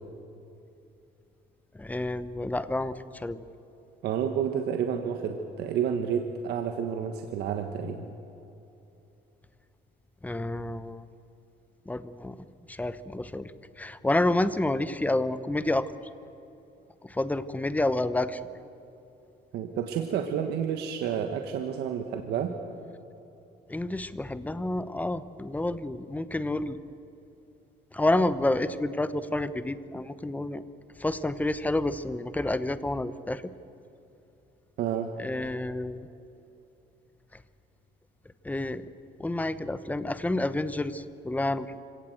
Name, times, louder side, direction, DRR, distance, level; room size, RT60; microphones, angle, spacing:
voice 1, 1.8-3.4 10.2-11.0 11.9-12.4 12.7-13.5 13.8-15.9 17.0-18.4 23.7-26.8 27.9-30.6 31.0-33.4 35.2-36.1 38.4-38.8 39.2-41.8, left 2 dB, 10° left, 14 dB, 0.9 m, -29 dB
voice 2, 4.0-8.1 19.5-22.5 34.8-35.1, right 8 dB, 75° right, 5 dB, 1.5 m, -30 dB
25.5 x 17.5 x 7.9 m, 2.9 s
cardioid pair, 110°, 17 cm